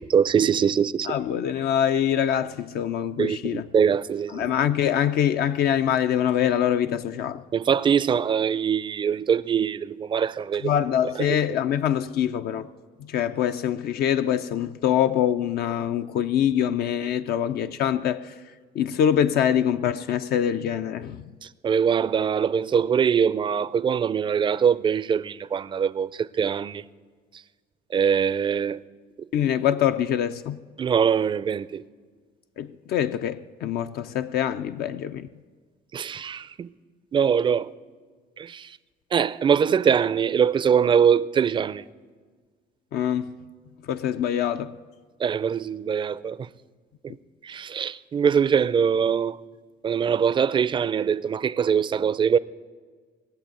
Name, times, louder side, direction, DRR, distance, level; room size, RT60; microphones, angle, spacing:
voice 1, 0.1-1.1 3.2-4.5 7.5-10.7 21.6-26.8 27.9-28.8 30.8-31.8 35.9-36.7 37.1-37.7 38.4-38.7 39.1-41.8 45.2-46.5 47.4-49.4 49.8-52.4, right 7 dB, 30° right, 0.4 m, -23 dB
voice 2, 1.1-3.7 4.3-7.4 10.6-12.7 13.0-18.3 18.7-21.2 29.3-30.6 32.6-35.3 42.9-43.3 43.9-44.8, left 9 dB, 65° left, 0.4 m, -24 dB
17.5 x 7.7 x 8.9 m
cardioid pair, 110°, 17 cm